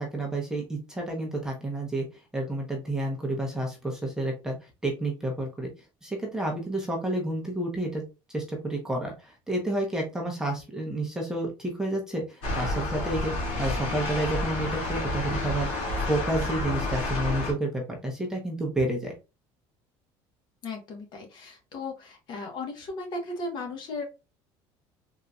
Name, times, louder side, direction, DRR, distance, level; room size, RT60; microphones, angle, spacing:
voice 1, 0.0-2.1 2.3-4.5 4.8-5.7 6.0-8.0 8.3-19.1, right 1 dB, 5° right, 0 dB, 0.8 m, -30 dB
sound 1, 12.4-17.5, left 2 dB, 70° left, 1.8 m, -30 dB
voice 2, 20.6-24.0, left 2 dB, 45° left, 3 dB, 1.2 m, -36 dB
3.8 x 2.8 x 2.3 m, 0.28 s
cardioid pair, 145°, 10 cm